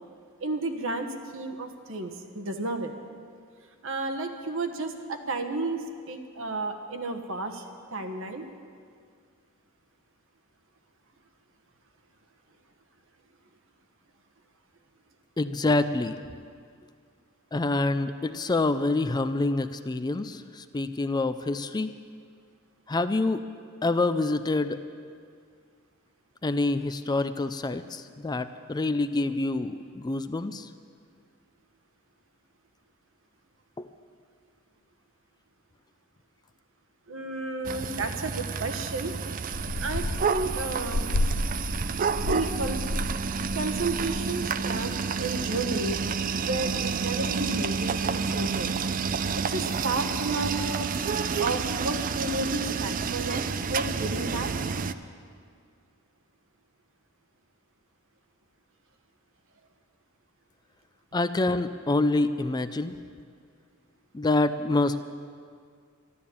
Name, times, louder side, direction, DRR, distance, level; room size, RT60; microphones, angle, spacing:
voice 1, 0.4-2.9 3.8-8.4 37.1-39.1 39.8-41.1 42.2-42.8 43.5-46.0 46.4-48.8 49.3-50.9 51.4-54.5, right 2 dB, 65° right, 6 dB, 1.3 m, -32 dB
voice 2, 15.4-16.2 17.5-21.9 22.9-23.5 23.8-24.8 26.4-30.7 33.8-33.9 61.1-62.9 64.1-65.0, left 2 dB, 20° left, 11 dB, 0.4 m, -26 dB
sound 1, 37.6-54.9, right 5 dB, 40° right, 0.5 m, -30 dB
sound 2, 39.5-44.5, left 1 dB, 70° left, 0.7 m, -31 dB
12.5 x 12.0 x 8.5 m, 2.1 s
head